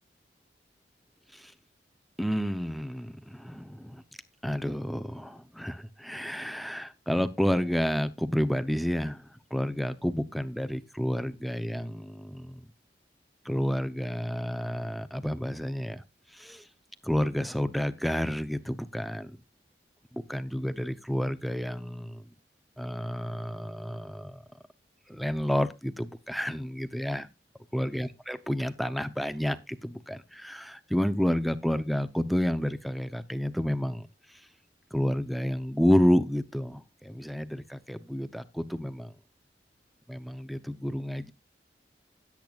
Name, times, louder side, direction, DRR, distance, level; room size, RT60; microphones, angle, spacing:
voice 1, 2.2-4.0 4.4-9.2 9.5-12.6 13.5-16.0 16.3-16.6 17.0-19.3 20.1-22.2 22.8-24.4 25.1-27.3 27.7-34.1 34.9-39.1 40.1-41.3, equal, ahead, 0.7 m, -30 dB
17.0 x 8.7 x 2.4 m
head